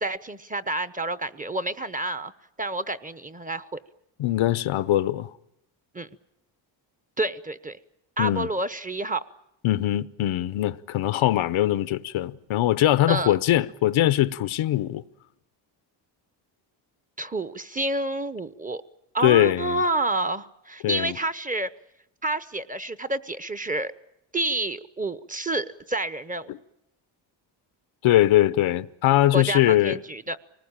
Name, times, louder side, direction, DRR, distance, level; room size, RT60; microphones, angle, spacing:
voice 1, 0.0-2.3 2.6-3.8 5.9-6.1 7.2-7.8 8.2-9.2 13.1-13.3 17.2-18.8 19.1-21.7 22.2-23.9 24.3-26.6 29.3-30.4, right 2 dB, 15° right, 0.8 m, -29 dB
voice 2, 4.2-5.3 8.2-8.5 9.6-15.0 19.2-19.8 20.8-21.2 26.5-26.6 28.0-30.0, left 14 dB, 80° left, 0.9 m, -22 dB
25.0 x 19.5 x 8.9 m
cardioid pair, 80°, 48 cm